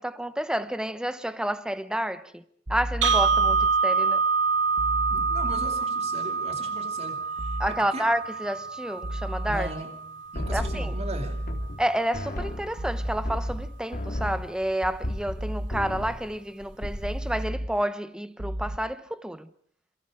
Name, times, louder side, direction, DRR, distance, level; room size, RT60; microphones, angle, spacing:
voice 1, 0.0-2.4 2.7-4.2 7.6-9.7 10.5-10.9 11.8-19.5, right 1 dB, 5° right, 1.0 m, -30 dB
sound 1, 2.7-3.7 4.8-5.7 7.4-7.7 9.0-9.7 10.4-11.7 12.8-13.7 15.4-15.7 17.0-17.7 18.4-18.8, right 1 dB, 55° right, 1.2 m, -32 dB
sound 2, 3.0-11.1, right 4 dB, 70° right, 0.8 m, -27 dB
voice 2, 5.1-8.1 9.5-10.0 10.3-11.5, right 2 dB, 35° right, 2.6 m, -38 dB
sound 3, 10.3-11.9 12.1-15.4 15.7-16.3 16.6-17.2, left 1 dB, 55° left, 3.4 m, -34 dB
27.5 x 23.5 x 5.0 m
head